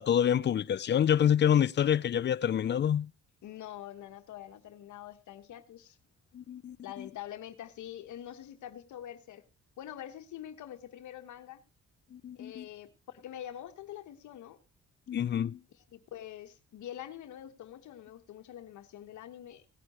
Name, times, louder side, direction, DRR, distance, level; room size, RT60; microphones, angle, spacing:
voice 1, 0.0-3.1 6.3-7.1 12.1-12.6 15.1-15.6, left 9 dB, 35° left, 0.5 m, -27 dB
voice 2, 3.4-6.0 6.8-9.4 9.8-11.6 12.3-14.6 15.7-19.6, left 11 dB, 75° left, 1.3 m, -45 dB
18.0 x 9.6 x 3.0 m
cardioid pair, 90°, 30 cm